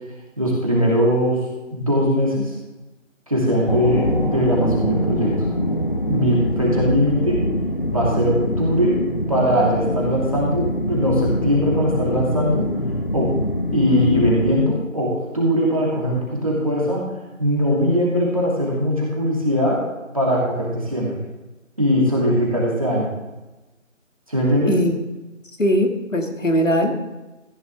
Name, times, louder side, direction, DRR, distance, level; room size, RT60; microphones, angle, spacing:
voice 1, 0.4-2.6 3.3-5.5 6.1-7.5 7.9-9.0 9.3-12.7 13.1-13.3 13.7-17.1 17.4-19.8 20.1-21.2 21.8-23.1 24.3-24.8, equal, 25° right, -4 dB, 2.6 m, -20 dB
sound 1, 3.7-14.6, left 1 dB, 40° left, 0.8 m, -24 dB
voice 2, 25.6-26.9, equal, 70° left, 3 dB, 2.3 m, -20 dB
15.0 x 10.0 x 3.6 m, 1.1 s
figure-of-eight pair, 175°, 40 cm